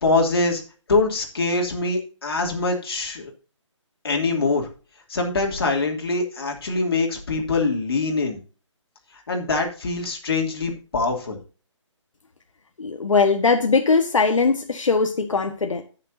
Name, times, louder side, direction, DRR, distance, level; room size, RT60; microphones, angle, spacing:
voice 1, 0.0-0.6 0.9-3.3 4.0-4.7 5.1-8.4 9.3-11.4, left 3 dB, 50° left, 1 dB, 2.9 m, -23 dB
voice 2, 12.8-15.8, left 4 dB, 85° left, 5 dB, 1.4 m, -20 dB
16.0 x 6.6 x 2.7 m, 0.36 s
hypercardioid pair, 175°, 16 cm